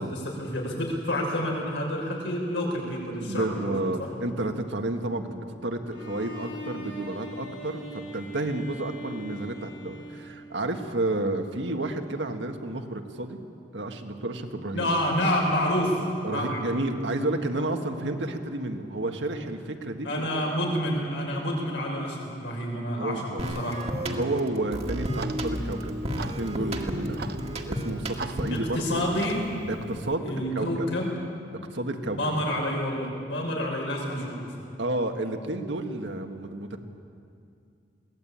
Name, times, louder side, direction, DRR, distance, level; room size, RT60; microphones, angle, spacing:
voice 1, 0.0-4.1 14.7-16.6 20.0-23.2 23.6-23.9 28.5-29.4 30.2-31.1 32.1-34.6, equal, 75° left, -1 dB, 5.8 m, -28 dB
voice 2, 3.1-13.4 13.7-14.9 16.2-20.4 22.9-23.6 24.1-27.3 27.7-29.1 29.7-30.3 30.6-30.9 31.7-32.2 34.8-36.8, right 2 dB, 75° right, 5 dB, 1.7 m, -31 dB
Bowed string instrument, 5.9-10.9, equal, 45° left, 3.1 m, -41 dB
sound 1, 23.4-28.7, equal, 35° right, 1.8 m, -32 dB
Clock, 24.8-30.2, right 3 dB, 60° right, 0.9 m, -41 dB
22.0 x 18.0 x 8.8 m, 2.5 s
head